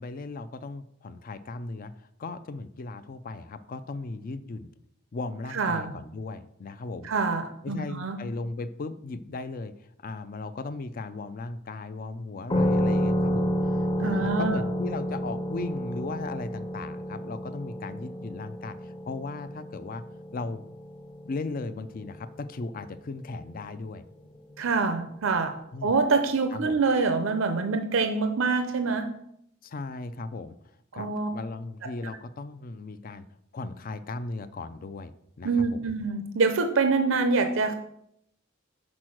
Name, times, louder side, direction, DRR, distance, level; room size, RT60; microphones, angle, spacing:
voice 1, 0.0-1.9 2.2-4.7 5.1-7.1 7.6-9.7 10.0-20.0 20.3-20.6 21.2-24.0 25.7-25.9 26.5-26.8 29.6-30.6 30.9-33.3 33.5-35.1 35.4-35.8, left 3 dB, 45° left, 13 dB, 0.4 m, -37 dB
voice 2, 5.5-5.9 7.0-8.2 13.9-14.6 24.6-25.5 25.8-29.1 30.9-31.3 35.4-37.7, right 4 dB, 75° right, 7 dB, 0.6 m, -25 dB
sound 1, 12.5-21.7, equal, 25° left, 0.8 m, -29 dB
6.1 x 4.3 x 6.1 m, 0.75 s
head